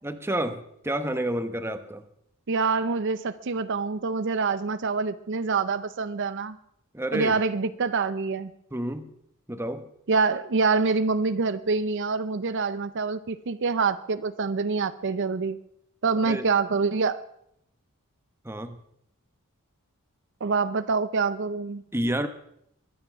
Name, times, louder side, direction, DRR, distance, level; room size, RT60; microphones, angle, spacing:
voice 1, 0.0-2.1 6.9-7.4 8.7-9.1 9.5-9.9 16.2-16.5 18.4-18.8 21.9-22.3, right 1 dB, 10° right, 9 dB, 1.0 m, -29 dB
voice 2, 2.5-6.6 7.1-8.5 10.1-15.6 16.0-17.2 20.4-21.8, right 4 dB, 55° right, 13 dB, 0.6 m, -26 dB
22.5 x 9.4 x 6.0 m, 0.75 s
head